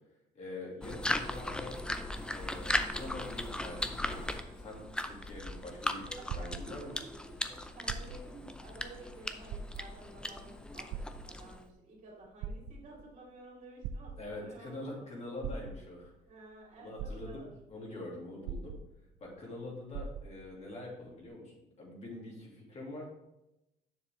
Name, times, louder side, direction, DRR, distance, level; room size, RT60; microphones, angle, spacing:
voice 1, 0.3-1.8 2.3-4.3 4.6-6.0 6.3-6.9 14.2-16.1 16.8-18.8 19.2-23.0, left 2 dB, 40° left, -3 dB, 2.5 m, -44 dB
sound 1, 0.8-11.7, left 1 dB, 5° left, 0.5 m, -38 dB
sound 2, 5.1-7.2 7.8-8.4 8.9-9.0 9.4-10.2 10.9-11.7 12.2-13.1 13.8-14.6 15.4-16.1 16.6-16.7 17.0-17.7 18.4-19.3 19.5-19.6 19.9-20.6 21.3-21.4, right 6 dB, 80° right, 0.4 m, -41 dB
voice 2, 6.1-15.2 16.3-17.5 19.4-19.8, right 2 dB, 50° right, -3 dB, 2.8 m, -52 dB
6.8 x 6.7 x 3.4 m, 0.91 s
cardioid pair, 110°, 17 cm